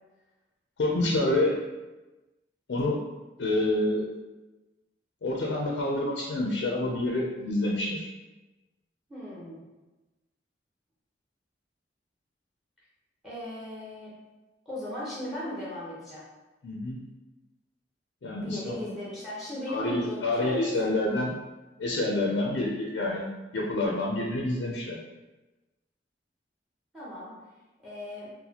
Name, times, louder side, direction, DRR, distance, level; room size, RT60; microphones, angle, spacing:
voice 1, 0.8-1.5 2.7-3.0 3.4-4.1 5.2-8.1 16.6-17.0 18.2-18.7 19.7-21.3 21.8-23.3 23.5-25.0, left 2 dB, 85° left, -2 dB, 0.5 m, -27 dB
voice 2, 9.1-9.7 13.2-14.1 14.7-16.2 18.4-20.6 26.9-27.3 27.8-28.3, left 1 dB, ahead, -8 dB, 0.8 m, -37 dB
4.0 x 2.1 x 2.8 m, 1.1 s
head